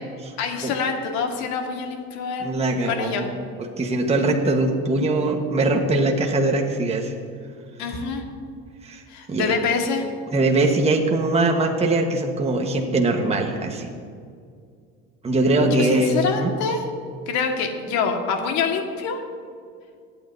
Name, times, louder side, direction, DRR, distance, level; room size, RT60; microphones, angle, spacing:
voice 1, 0.4-3.3 7.8-8.2 9.1-10.1 15.6-16.8 17.3-19.2, left 5 dB, 70° left, 3 dB, 1.9 m, -26 dB
voice 2, 2.4-3.3 3.8-7.1 8.8-9.0 9.3-9.5 10.3-13.9 15.2-16.5, right 2 dB, 20° right, 1 dB, 1.3 m, -21 dB
22.5 x 9.1 x 2.7 m, 2.2 s
supercardioid pair, 100°, 30 cm